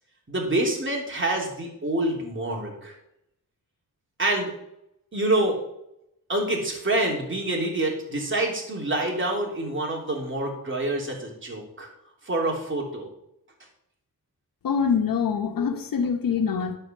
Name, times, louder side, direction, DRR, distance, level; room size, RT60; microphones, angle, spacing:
voice 1, 0.3-3.0 4.2-4.5 5.1-5.6 6.3-11.9 12.2-13.1, right 1 dB, 35° right, -1 dB, 3.3 m, -26 dB
voice 2, 14.6-16.8, left 6 dB, 75° left, 6 dB, 1.1 m, -24 dB
11.0 x 5.0 x 7.4 m, 0.80 s
cardioid pair, 75°, 34 cm